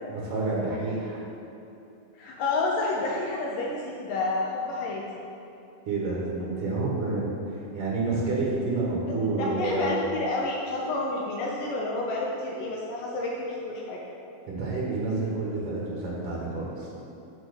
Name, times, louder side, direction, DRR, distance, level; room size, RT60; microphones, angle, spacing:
voice 1, 0.1-1.2 5.9-7.3 7.7-10.0 14.5-16.9, right 3 dB, 60° right, -5 dB, 1.5 m, -29 dB
voice 2, 2.2-5.0 9.4-14.0, left 2 dB, 75° left, -3 dB, 2.0 m, -29 dB
7.2 x 4.3 x 6.8 m, 2.8 s
omnidirectional pair, 4.5 m